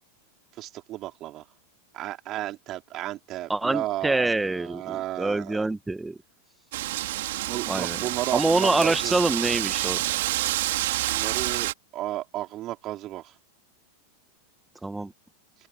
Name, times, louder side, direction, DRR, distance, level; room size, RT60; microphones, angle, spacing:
voice 1, 0.6-1.4 1.9-5.6 7.4-9.1 11.1-13.3, right 15 dB, 35° right, 5.0 m, -33 dB
voice 2, 3.5-6.2 7.7-8.0 8.3-10.0 14.8-15.1, right 2 dB, 5° right, 1.8 m, -25 dB
Wind, 6.7-11.7, right 16 dB, 55° right, 3.3 m, -28 dB
open air
figure-of-eight pair, 90°, 0 cm